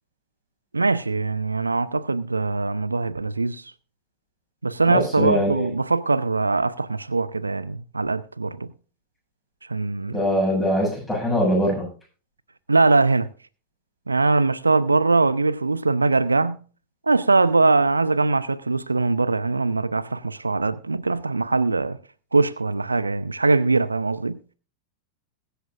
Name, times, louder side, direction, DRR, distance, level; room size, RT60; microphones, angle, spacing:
voice 1, 0.7-3.7 4.6-8.7 9.7-10.2 12.7-13.3 14.1-16.6 17.1-22.0 22.3-24.4, right 3 dB, 80° right, 0.5 m, -22 dB
voice 2, 4.9-5.7 10.1-11.8, equal, 5° left, 7.1 m, -22 dB
21.5 x 8.1 x 2.5 m
figure-of-eight pair, 90°, 0 cm